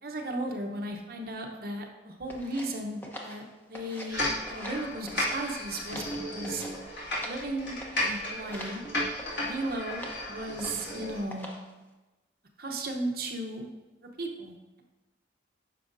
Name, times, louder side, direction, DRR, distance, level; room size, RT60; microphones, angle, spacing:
voice 1, 0.0-3.4 3.7-6.0 6.3-6.6 7.2-8.8 9.4-11.5 12.6-13.7 14.2-14.8, right 1 dB, 50° right, 2 dB, 0.8 m, -35 dB
sound 1, 2.3-4.2 4.4-5.4 5.7-7.5 7.8-8.1 8.5-8.8 9.2-9.5 9.9-10.2 10.6-11.0 11.3-11.7, equal, 10° left, 0.7 m, -44 dB
sound 2, 4.1-11.2, left 1 dB, 65° left, 2.3 m, -34 dB
9.2 x 6.1 x 2.6 m, 1.1 s
head